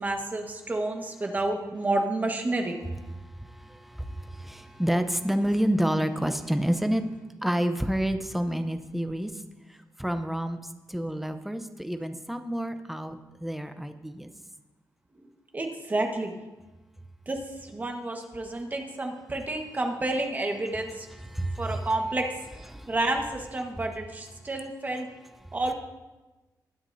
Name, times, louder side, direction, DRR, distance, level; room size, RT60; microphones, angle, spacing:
voice 1, 0.0-2.8 15.1-16.4 17.3-21.1 21.6-22.3 22.9-25.1 25.5-25.7, right 2 dB, 25° right, 3 dB, 1.5 m, -30 dB
voice 2, 3.4-7.0 7.4-9.3 10.0-10.6 10.9-14.3 21.3-21.8 22.7-22.9, right 1 dB, 5° right, 7 dB, 0.7 m, -29 dB
19.5 x 9.5 x 2.7 m, 1.1 s
wide cardioid pair, 135°, 7 cm